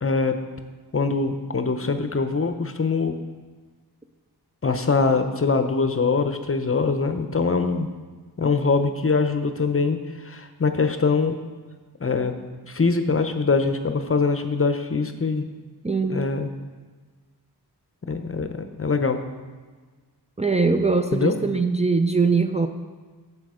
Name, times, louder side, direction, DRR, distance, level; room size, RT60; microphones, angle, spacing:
voice 1, 0.0-0.4 0.9-3.1 4.6-7.9 8.4-10.0 10.2-11.4 12.0-12.3 12.6-15.4 16.1-16.5 18.1-19.2 21.1-21.3, left 4 dB, 35° left, 8 dB, 0.8 m, -23 dB
voice 2, 15.8-16.3 20.4-22.7, right 4 dB, 15° right, 6 dB, 0.6 m, -21 dB
7.7 x 7.7 x 5.0 m, 1.4 s
cardioid pair, 65°, 41 cm